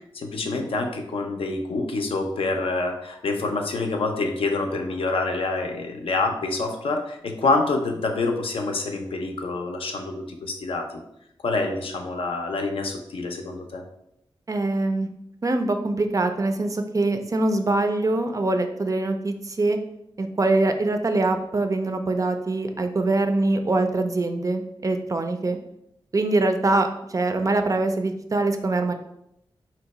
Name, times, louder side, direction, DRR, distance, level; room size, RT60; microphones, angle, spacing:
voice 1, 0.1-11.0 11.4-13.8, left 3 dB, 75° left, 3 dB, 0.5 m, -27 dB
voice 2, 14.5-15.1 15.4-19.8 20.2-25.6 26.1-28.9, right 2 dB, 35° right, 6 dB, 0.4 m, -23 dB
2.7 x 2.2 x 4.0 m, 0.79 s
cardioid pair, 65°, 9 cm